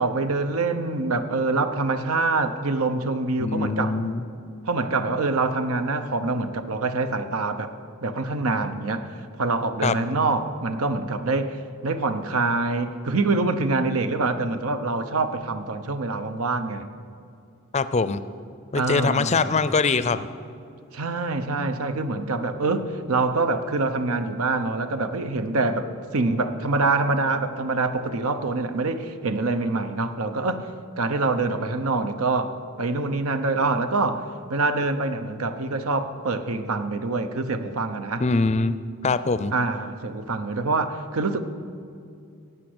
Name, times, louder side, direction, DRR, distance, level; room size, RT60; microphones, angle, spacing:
voice 1, 0.0-4.0 4.6-7.7 8.0-9.1 9.4-16.9 18.7-19.5 20.9-30.7 31.0-34.2 34.5-38.2 39.5-41.4, right 3 dB, 80° right, 9 dB, 0.9 m, -25 dB
voice 2, 3.4-4.2 9.8-9.9 17.7-18.2 18.7-20.2 38.2-38.8 39.0-39.5, left 4 dB, 30° left, 13 dB, 0.5 m, -23 dB
15.0 x 8.9 x 8.0 m, 2.4 s
head